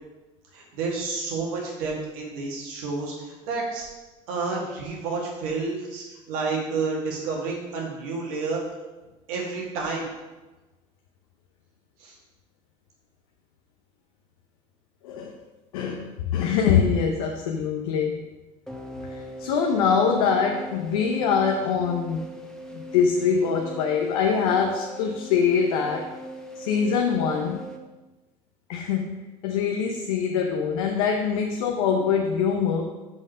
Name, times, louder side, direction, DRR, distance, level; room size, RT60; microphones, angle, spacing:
voice 1, 0.5-3.9 4.3-8.6 9.3-10.1 12.0-12.1, right 4 dB, 85° right, -2 dB, 2.4 m, -30 dB
voice 2, 15.0-15.4 15.7-18.2 19.1-22.2 22.7-26.1 26.6-27.6 28.7-32.9, left 6 dB, 90° left, 2 dB, 0.8 m, -24 dB
sound 1, 18.7-27.8, equal, 5° left, 1.2 m, -40 dB
5.9 x 5.5 x 6.3 m, 1.1 s
supercardioid pair, 80°, 18 cm